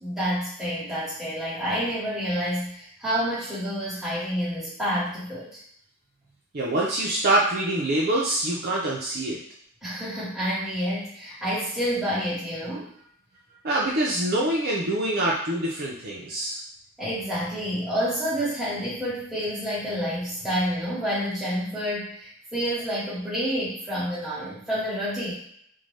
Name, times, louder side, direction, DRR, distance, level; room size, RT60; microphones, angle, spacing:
voice 1, 0.0-5.6 9.8-12.9 17.0-25.3, equal, ahead, -11 dB, 1.2 m, -28 dB
voice 2, 6.5-9.4 13.6-16.6, right 1 dB, 45° right, -5 dB, 0.5 m, -25 dB
2.6 x 2.1 x 3.2 m, 0.66 s
head